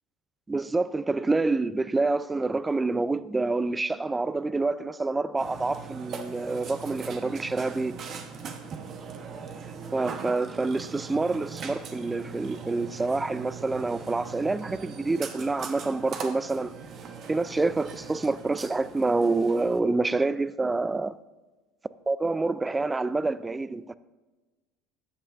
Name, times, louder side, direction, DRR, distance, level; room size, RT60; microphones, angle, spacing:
voice 1, 0.5-8.0 9.9-16.7 17.3-21.1 22.1-23.9, right 3 dB, 15° right, 0.4 m, -27 dB
Burping eructation, 5.4-19.8, right 6 dB, 45° right, 1.1 m, -40 dB
13.5 x 8.4 x 2.6 m
hypercardioid pair, 75°, 0 cm